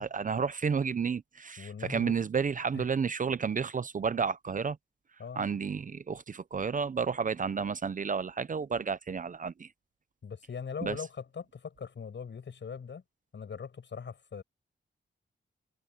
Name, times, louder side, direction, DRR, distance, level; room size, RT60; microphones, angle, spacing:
voice 1, 0.0-4.8 5.4-9.7 10.8-11.0, right 6 dB, 40° right, 0.6 m, -31 dB
voice 2, 1.6-2.1 2.7-2.8 5.2-5.4 10.2-13.0 13.3-14.4, left 6 dB, 60° left, 7.4 m, -41 dB
wide cardioid pair, 165°, 21 cm